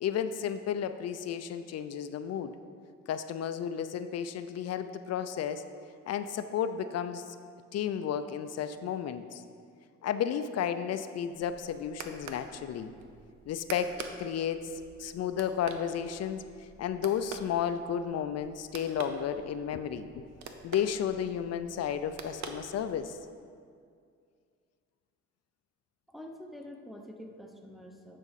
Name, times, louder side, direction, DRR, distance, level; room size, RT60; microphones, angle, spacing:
voice 1, 0.0-2.5 3.1-5.6 6.1-7.2 7.7-9.4 10.0-12.9 13.5-16.4 16.8-20.2 20.6-23.2, left 8 dB, 60° left, 11 dB, 0.5 m, -33 dB
sound 1, 11.3-23.2, right 4 dB, 65° right, 0.8 m, -47 dB
voice 2, 26.1-28.2, left 1 dB, ahead, 3 dB, 0.8 m, -46 dB
9.8 x 5.0 x 4.1 m, 2.2 s
cardioid pair, 90°, 30 cm